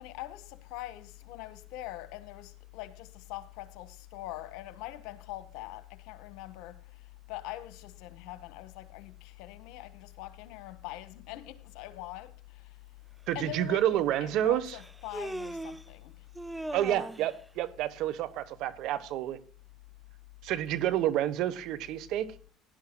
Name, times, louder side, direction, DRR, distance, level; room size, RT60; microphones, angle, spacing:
voice 1, 0.0-12.8 13.3-16.3, left 16 dB, 75° left, 1.2 m, -43 dB
Human voice, 13.3-13.4 14.7-15.9 16.4-17.4, right 1 dB, 5° right, 0.4 m, -39 dB
voice 2, 13.3-14.7 16.7-19.4 20.4-22.3, right 12 dB, 65° right, 1.2 m, -29 dB
18.0 x 11.0 x 2.3 m
supercardioid pair, 80°, 0 cm